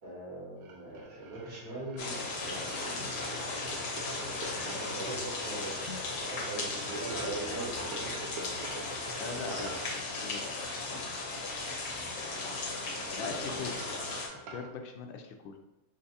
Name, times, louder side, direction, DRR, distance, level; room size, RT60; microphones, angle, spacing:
voice 1, 0.0-3.1 4.5-8.1 13.1-14.0, right 2 dB, 55° right, -6 dB, 1.8 m, -42 dB
sound 1, 0.6-5.2 6.8-10.0 12.1-14.7, right 3 dB, 70° right, 0.9 m, -45 dB
sound 2, 2.0-14.3, left 3 dB, 60° left, 0.8 m, -36 dB
voice 2, 9.2-9.7 10.1-10.6 13.2-13.8 14.3-15.6, left 5 dB, 85° left, 4 dB, 1.3 m, -40 dB
4.6 x 2.5 x 2.7 m, 0.98 s
omnidirectional pair, 2.0 m